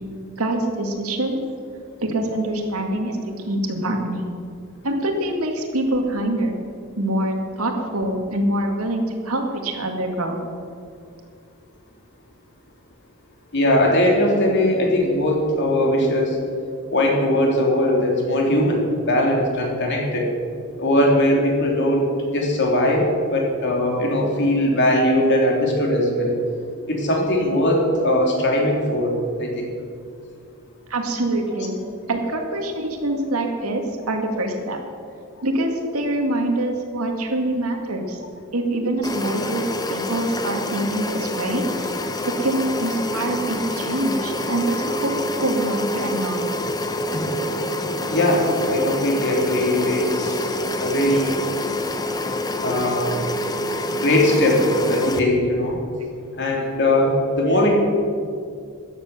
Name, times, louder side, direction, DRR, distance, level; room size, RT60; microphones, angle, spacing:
voice 1, 0.4-1.4 2.0-3.2 3.4-4.3 4.8-6.5 7.0-10.4 30.9-31.8 32.1-34.8 35.4-38.2 38.5-39.6 39.9-41.9 42.4-45.2 45.4-46.5, right 1 dB, 90° right, 2 dB, 2.2 m, -24 dB
voice 2, 13.5-16.4 16.9-18.8 19.1-20.3 20.8-26.3 26.9-29.1 29.4-29.7 48.1-50.5 50.8-51.3 52.6-53.2 53.9-55.8 56.4-57.7, left 1 dB, 55° left, -1 dB, 3.1 m, -20 dB
Ceiling Fan (Indoor), 39.0-55.2, left 1 dB, 20° left, 0.8 m, -26 dB
14.0 x 10.0 x 6.8 m, 2.3 s
head